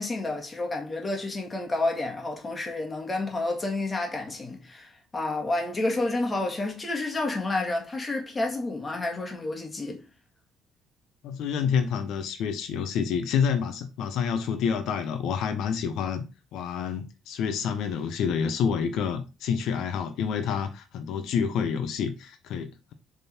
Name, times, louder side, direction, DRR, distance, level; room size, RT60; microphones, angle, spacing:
voice 1, 0.0-10.0, left 2 dB, 20° left, 1.7 m, -30 dB
voice 2, 11.2-16.2 16.5-22.9, left 7 dB, 70° left, 0.9 m, -28 dB
7.1 x 3.8 x 4.4 m
cardioid pair, 155°, 0 cm